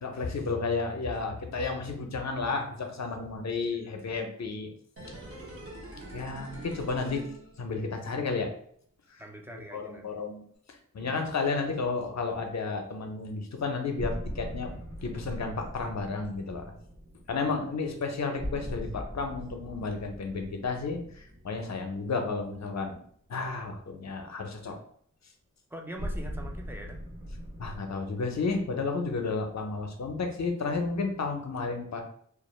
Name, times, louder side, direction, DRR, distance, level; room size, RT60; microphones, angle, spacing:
voice 1, 0.0-4.7 6.1-7.3 7.6-8.5 9.1-9.2 9.7-14.7 15.0-16.7 17.3-23.0 23.3-24.8 27.6-32.0, left 4 dB, 55° left, 4 dB, 0.5 m, -32 dB
sound 1, 5.0-8.1 8.4-8.5, right 1 dB, 45° right, 0.7 m, -44 dB
voice 2, 9.2-10.2 11.0-11.2 17.3-17.6 25.7-27.0, right 1 dB, 5° right, 1 dB, 0.4 m, -44 dB
sound 2, 14.0-22.9 26.0-27.8, equal, 85° right, 1.0 m, -40 dB
2.3 x 2.0 x 3.0 m, 0.63 s
wide cardioid pair, 50°, 32 cm